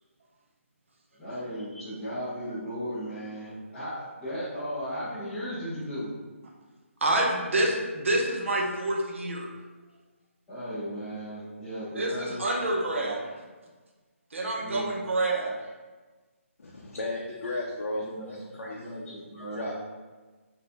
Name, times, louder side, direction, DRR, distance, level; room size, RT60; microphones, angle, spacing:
voice 1, 1.2-6.1 10.5-12.4 12.9-13.1 14.6-15.0 17.9-18.2 18.6-19.7, equal, 5° left, -16 dB, 0.4 m, -36 dB
voice 2, 7.0-9.5 11.9-13.2 14.3-15.5, right 1 dB, 65° right, 0 dB, 0.7 m, -27 dB
voice 3, 16.6-18.9 19.5-19.7, left 2 dB, 80° left, -2 dB, 0.5 m, -35 dB
2.7 x 2.2 x 4.0 m, 1.3 s
hypercardioid pair, 175°, 8 cm